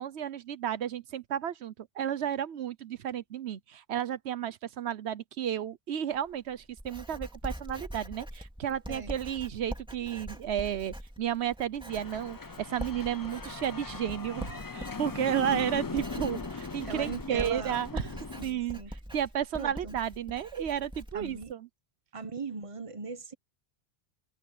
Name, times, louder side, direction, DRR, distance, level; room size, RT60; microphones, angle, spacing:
voice 1, 0.0-18.1 18.4-18.8 19.1-21.7, right 9 dB, 90° right, 1.1 m, -33 dB
Writing, 6.1-21.5, equal, 5° right, 2.4 m, -43 dB
sound 1, 11.9-18.4, left 4 dB, 25° left, 0.5 m, -39 dB
voice 2, 16.8-17.8 18.3-18.9 19.5-20.0 21.1-21.5 22.1-23.3, right 5 dB, 30° right, 1.2 m, -38 dB
omnidirectional pair, 1.1 m